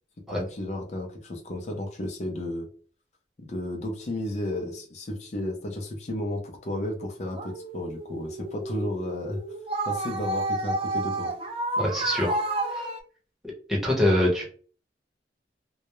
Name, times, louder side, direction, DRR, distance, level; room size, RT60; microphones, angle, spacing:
voice 1, 0.3-2.7 3.5-9.4 9.8-11.3, left 1 dB, 40° left, 1 dB, 0.5 m, -33 dB
sound 1, 7.3-13.0, right 2 dB, 30° right, 0.3 m, -31 dB
voice 2, 11.8-12.4 12.7-12.9 13.7-14.4, left 1 dB, ahead, -5 dB, 0.7 m, -24 dB
2.3 x 2.0 x 2.9 m, 0.42 s
head